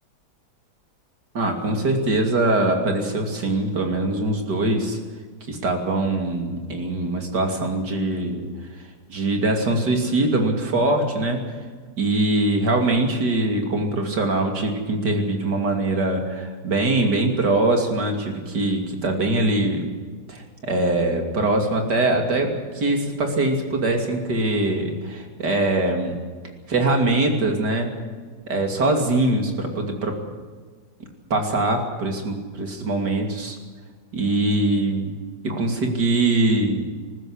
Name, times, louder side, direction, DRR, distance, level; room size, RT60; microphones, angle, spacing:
voice 1, 1.3-5.0 5.5-8.5 9.1-11.4 12.0-19.9 20.3-26.2 26.7-27.9 28.5-30.2 31.3-33.6 34.1-35.2 35.4-36.9, right 2 dB, 80° right, 3 dB, 3.3 m, -22 dB
20.0 x 15.0 x 10.0 m, 1.5 s
omnidirectional pair, 1.8 m